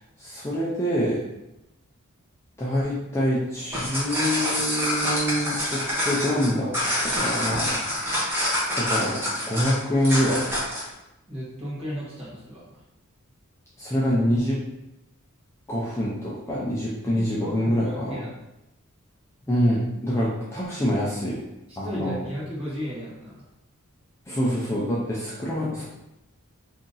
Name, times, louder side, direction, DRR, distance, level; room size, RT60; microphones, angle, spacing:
voice 1, 0.2-1.2 2.6-6.7 7.0-7.7 8.7-10.5 13.8-14.6 15.7-18.2 19.5-21.4 21.8-22.2 24.3-25.8, equal, 10° left, -8 dB, 0.5 m, -25 dB
sound 1, 3.6-10.9, left 1 dB, 10° right, 0.9 m, -26 dB
voice 2, 11.3-12.6 17.1-18.3 21.7-23.4, equal, 25° right, -8 dB, 1.2 m, -35 dB
2.8 x 2.6 x 3.8 m, 0.91 s
head